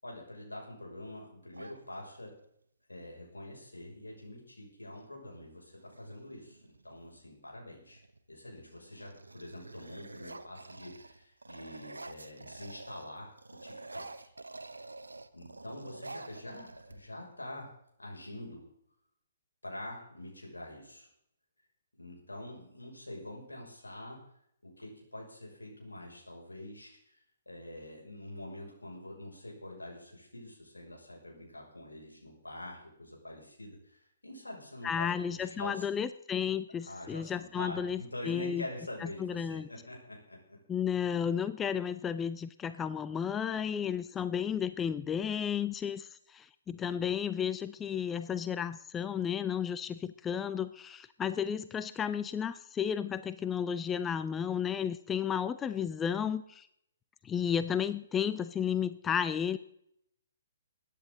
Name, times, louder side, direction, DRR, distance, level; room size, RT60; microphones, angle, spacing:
voice 1, 0.0-2.3 2.9-8.0 8.3-13.3 13.6-14.3 15.3-17.7 18.0-18.7 19.6-21.1 21.9-24.2 24.6-27.2 27.5-35.9 36.9-40.6 41.1-41.3, left 1 dB, 80° left, -1 dB, 6.0 m, -45 dB
sound 1, 1.5-2.5 4.2-4.3 4.6-5.1 5.7-7.2 7.8-8.2 8.6-13.1 13.4-17.3, right 2 dB, 80° right, 1.0 m, -48 dB
voice 2, 34.8-38.0 38.3-38.6 39.0-39.7 40.7-56.7 57.2-59.6, left 8 dB, 15° left, 13 dB, 0.4 m, -33 dB
22.0 x 10.0 x 3.9 m, 0.73 s
figure-of-eight pair, 130°, 0 cm